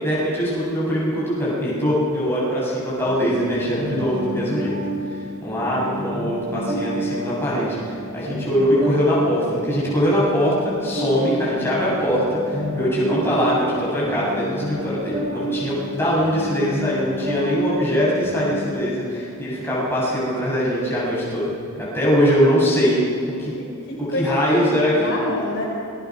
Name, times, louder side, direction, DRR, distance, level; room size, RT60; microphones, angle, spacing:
voice 1, 0.0-4.8 5.1-23.0 23.4-23.5 24.2-25.2, equal, 10° left, -7 dB, 7.8 m, -22 dB
sound 1, 3.0-18.6, right 1 dB, 30° right, 5.6 m, -30 dB
voice 2, 23.6-25.6, left 1 dB, 50° left, -3 dB, 5.3 m, -28 dB
28.0 x 21.5 x 6.3 m, 2.7 s
head